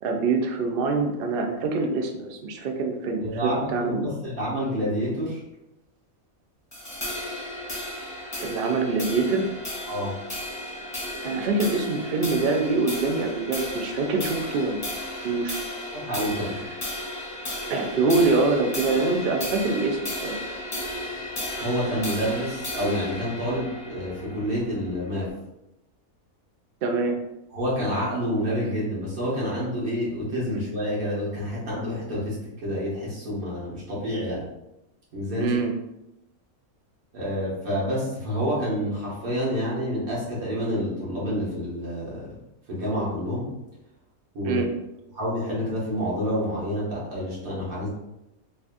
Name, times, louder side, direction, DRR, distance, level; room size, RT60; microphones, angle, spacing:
voice 1, 0.0-4.1 8.4-9.5 11.2-14.9 15.2-15.6 17.7-20.4 26.8-27.2 35.4-35.7 44.4-44.7, right 3 dB, 65° right, 3 dB, 0.5 m, -25 dB
voice 2, 3.2-5.4 9.9-10.1 15.9-16.6 21.6-25.3 27.5-34.4 35.1-35.6 37.1-42.3 42.7-43.5 44.3-44.7 45.1-47.9, equal, 90° right, -7 dB, 1.8 m, -28 dB
sound 1, 6.7-25.3, left 1 dB, 15° left, 0.8 m, -34 dB
4.1 x 2.8 x 2.5 m, 0.90 s
omnidirectional pair, 1.5 m